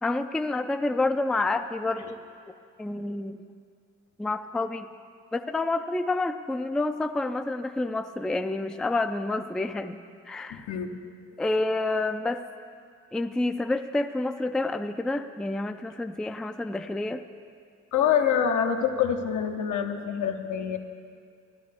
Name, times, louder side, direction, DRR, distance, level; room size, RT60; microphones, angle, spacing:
voice 1, 0.0-2.2 2.8-3.4 4.2-4.9 5.3-10.0 10.3-10.7 11.4-12.4 13.1-17.2, left 2 dB, ahead, 7 dB, 0.4 m, -28 dB
voice 2, 10.5-10.9 11.5-11.6 17.9-20.8, left 8 dB, 75° left, 4 dB, 1.0 m, -26 dB
16.0 x 11.0 x 3.5 m, 2.2 s
cardioid pair, 90°, 30 cm